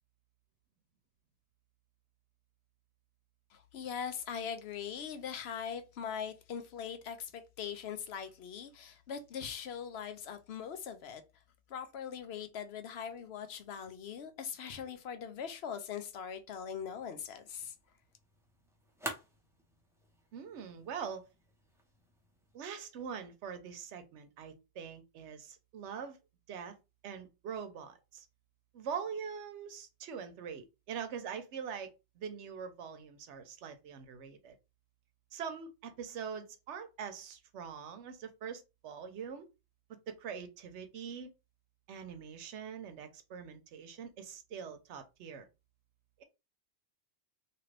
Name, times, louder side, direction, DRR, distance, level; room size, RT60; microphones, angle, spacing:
voice 1, 3.5-11.2 11.7-17.7, left 7 dB, 70° left, 0.8 m, -41 dB
sound 1, 16.6-22.6, right 1 dB, 5° right, 0.6 m, -49 dB
voice 2, 20.3-21.3 22.5-26.2 26.5-26.7 27.0-28.3 28.7-34.5 35.3-39.5 39.9-41.3 41.9-45.5, right 7 dB, 85° right, 0.9 m, -43 dB
2.9 x 2.5 x 3.2 m
omnidirectional pair, 1.2 m